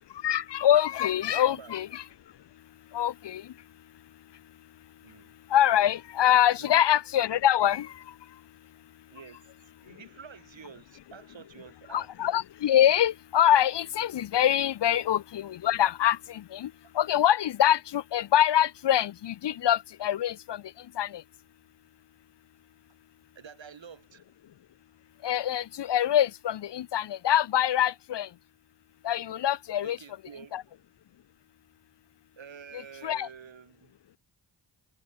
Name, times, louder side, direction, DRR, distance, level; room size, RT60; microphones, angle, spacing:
voice 1, 0.2-2.0 2.9-3.5 5.5-7.9 11.9-20.6 21.0-21.2 25.2-28.3 29.0-30.0 30.5-30.6 33.0-33.3, left 11 dB, 60° left, 0.7 m, -24 dB
voice 2, 1.3-1.7 5.0-5.3 6.5-6.8 9.1-9.4 9.8-12.1 23.4-24.2 29.8-30.5 32.4-33.9, right 7 dB, 65° right, 3.4 m, -48 dB
supercardioid pair, 40°, 48 cm